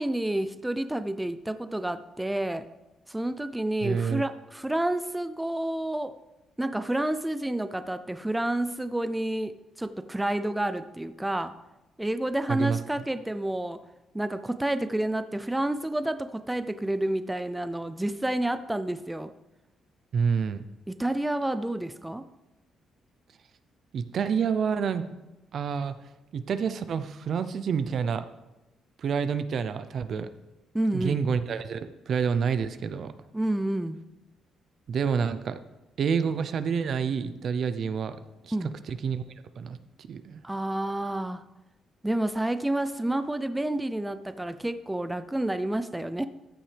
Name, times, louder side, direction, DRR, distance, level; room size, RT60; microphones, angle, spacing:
voice 1, 0.0-2.7 3.1-6.1 6.6-11.5 12.0-13.8 14.1-19.3 20.9-22.2 30.7-31.2 33.3-34.0 38.5-38.7 40.4-41.4 42.0-46.2, right 1 dB, 10° right, 11 dB, 0.5 m, -29 dB
voice 2, 3.8-4.2 12.5-12.8 20.1-20.6 23.9-25.0 25.5-26.0 26.3-28.3 29.0-30.3 30.9-33.1 34.9-35.6 36.0-38.2 38.4-38.5 38.9-39.2 39.6-40.4, right 6 dB, 60° right, 11 dB, 0.6 m, -28 dB
14.5 x 7.4 x 3.4 m, 1.0 s
cardioid pair, 90°, 0 cm